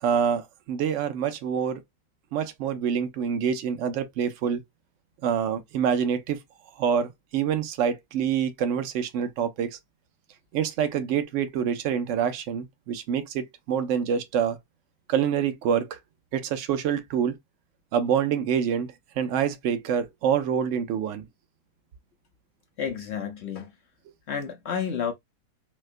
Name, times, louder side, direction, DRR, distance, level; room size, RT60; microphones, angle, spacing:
voice 1, 0.0-1.8 2.3-4.6 5.2-6.4 6.8-9.8 10.5-14.6 15.1-16.0 16.3-17.3 17.9-21.2, right 8 dB, 65° right, 0.8 m, -26 dB
voice 2, 22.8-23.7 24.3-25.1, left 7 dB, 65° left, 0.6 m, -30 dB
4.2 x 2.2 x 2.4 m
omnidirectional pair, 1.7 m